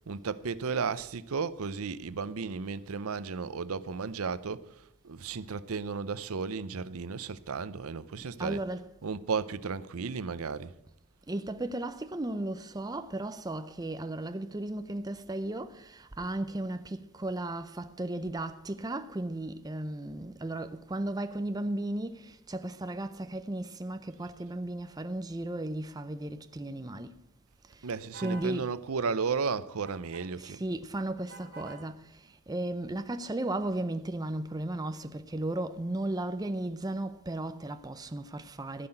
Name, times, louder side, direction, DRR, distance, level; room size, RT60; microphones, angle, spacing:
voice 1, 0.1-8.6 9.0-10.7 27.8-30.6, right 5 dB, 75° right, 0.6 m, -34 dB
voice 2, 8.4-8.9 11.3-27.1 27.7-27.9 28.2-28.7 30.4-38.9, right 1 dB, 15° right, 0.5 m, -35 dB
sound 1, 28.1-28.5 29.9-30.2 31.3-31.8, right 3 dB, 55° right, 3.2 m, -47 dB
15.0 x 5.8 x 8.8 m
head